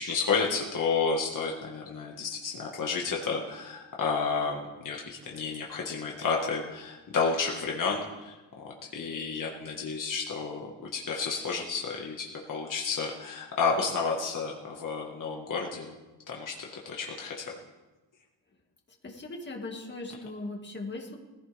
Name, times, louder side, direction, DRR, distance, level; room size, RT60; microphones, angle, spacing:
voice 1, 0.0-8.4 8.6-15.9 16.3-17.5, left 5 dB, 45° left, -1 dB, 1.7 m, -31 dB
voice 2, 19.0-21.2, left 2 dB, 25° left, 1 dB, 2.1 m, -39 dB
20.0 x 15.5 x 3.5 m, 1.2 s
wide cardioid pair, 140°, 44 cm